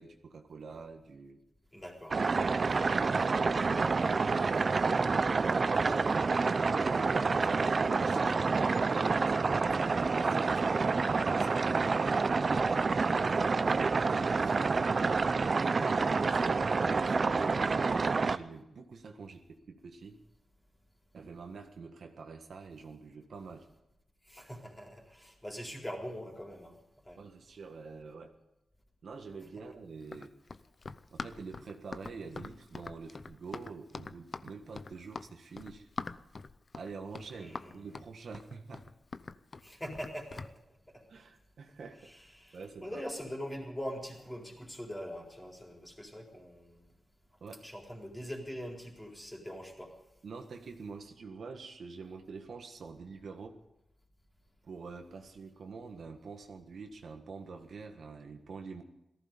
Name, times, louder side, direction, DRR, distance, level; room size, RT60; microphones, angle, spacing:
voice 1, 0.0-1.4 2.2-5.0 5.8-12.6 14.1-20.2 21.1-23.7 27.2-28.3 29.0-30.3 31.1-35.9 36.7-38.8 41.1-42.1 42.5-43.0 47.4-47.7 50.2-53.6 54.6-58.8, right 4 dB, 65° right, 4 dB, 1.7 m, -47 dB
voice 2, 1.7-2.2 6.0-6.2 13.3-13.6 24.3-26.8 27.1-27.2 37.3-37.9 39.6-40.4 42.0-46.8 47.6-49.9, equal, 10° left, 0 dB, 4.1 m, -43 dB
sound 1, 2.1-18.4, right 4 dB, 40° right, 0.6 m, -28 dB
Run, 30.0-40.5, left 4 dB, 40° left, 0.6 m, -44 dB
18.0 x 15.0 x 5.3 m, 0.87 s
wide cardioid pair, 130°, 0 cm